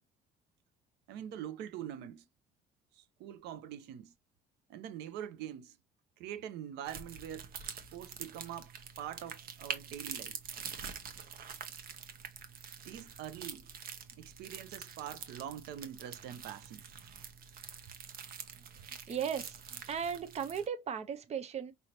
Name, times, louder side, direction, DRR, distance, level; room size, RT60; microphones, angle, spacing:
voice 1, 1.1-2.3 2.9-4.1 4.7-5.8 6.2-10.4 12.8-13.7 14.1-16.8, right 10 dB, 90° right, 0.7 m, -44 dB
sound 1, 6.8-20.7, right 7 dB, 60° right, 1.1 m, -46 dB
voice 2, 19.1-21.7, right 7 dB, 40° right, 0.8 m, -37 dB
5.5 x 3.1 x 2.8 m
cardioid pair, 110°, 17 cm